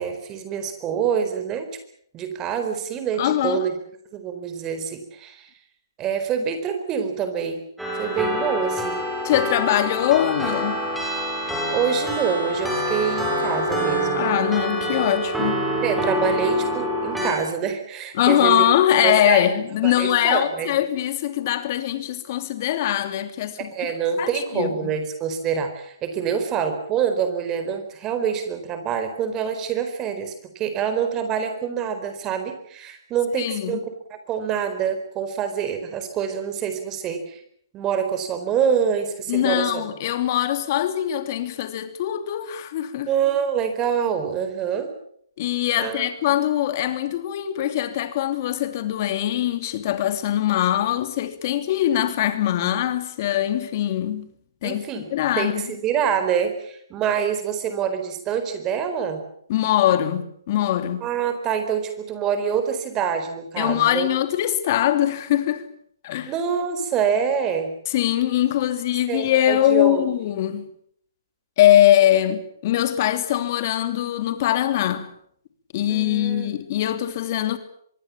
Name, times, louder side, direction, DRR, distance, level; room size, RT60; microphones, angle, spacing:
voice 1, 0.0-1.8 2.1-3.7 4.1-5.5 6.0-7.6 7.9-9.0 11.7-14.3 15.8-18.7 19.0-19.4 19.8-20.8 23.6-33.8 34.1-37.4 37.7-39.8 43.1-44.9 45.8-46.0 54.6-55.1 55.4-59.2 61.0-64.1 66.3-67.7 69.1-70.1 75.9-76.5, right 7 dB, 20° right, 4.4 m, -26 dB
voice 2, 3.2-3.7 9.2-10.9 14.1-15.7 18.1-23.7 24.2-24.9 33.4-33.8 39.3-43.1 45.4-54.3 54.6-55.7 59.5-61.0 63.6-65.6 66.0-66.3 67.9-70.7 71.6-75.1 75.7-77.6, left 12 dB, 40° left, 2.9 m, -22 dB
sound 1, 7.8-17.3, equal, ahead, 6.6 m, -26 dB
25.0 x 22.5 x 7.3 m
hypercardioid pair, 150°, 2 cm